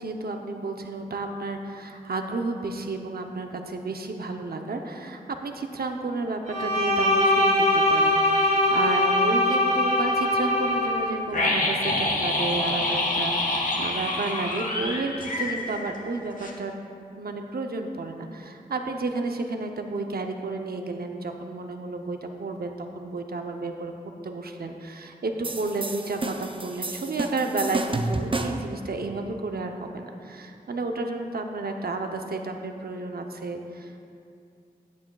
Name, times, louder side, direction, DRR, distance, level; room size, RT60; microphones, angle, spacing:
voice 1, 0.0-16.8 17.2-23.9 24.2-34.0, right 3 dB, 75° right, 4 dB, 0.7 m, -32 dB
Bowed string instrument, 6.5-11.1, left 1 dB, 50° right, 2.4 m, -22 dB
sound 1, 11.3-16.1 16.4-16.5, left 2 dB, 55° left, 1.3 m, -26 dB
sound 2, 25.4-28.7, right 2 dB, 35° right, 0.5 m, -30 dB
14.0 x 9.0 x 2.3 m, 2.4 s
wide cardioid pair, 65°, 16 cm